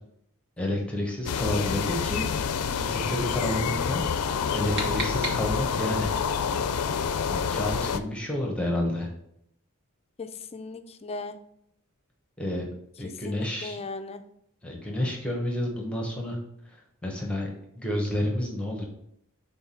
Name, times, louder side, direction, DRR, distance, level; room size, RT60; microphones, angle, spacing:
voice 1, 0.6-2.3 2.7-4.1 4.5-6.1 7.3-9.1 12.4-12.6 13.0-13.8 14.6-16.4 17.0-17.5 17.8-18.8, left 1 dB, 5° left, -1 dB, 1.0 m, -30 dB
sound 1, 1.3-8.0, left 6 dB, 90° left, 0.4 m, -28 dB
sound 2, 4.3-5.9, right 1 dB, 50° right, 1.5 m, -36 dB
voice 2, 10.2-11.4 13.0-14.2, left 3 dB, 25° left, 9 dB, 0.4 m, -38 dB
5.7 x 4.0 x 4.2 m, 0.74 s
head